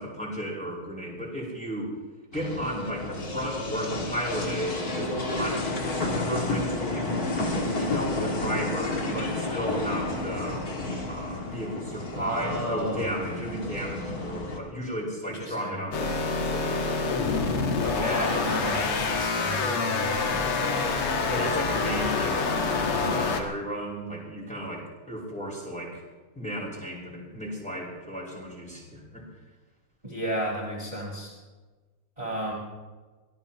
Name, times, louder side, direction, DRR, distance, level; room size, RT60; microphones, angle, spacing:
voice 1, 0.0-1.9 2.3-7.2 7.8-10.7 11.1-17.1 21.3-26.0 26.3-29.2, equal, 5° left, -4 dB, 5.1 m, -34 dB
sound 1, 2.3-14.6, left 2 dB, 45° left, 2.7 m, -31 dB
voice 2, 12.1-13.1 15.2-15.8 17.8-20.9 30.0-31.4 32.2-32.5, equal, 15° right, -4 dB, 4.8 m, -33 dB
sound 2, 15.9-23.4, left 4 dB, 80° left, 2.6 m, -27 dB
25.5 x 18.5 x 3.0 m, 1.3 s
omnidirectional pair, 2.4 m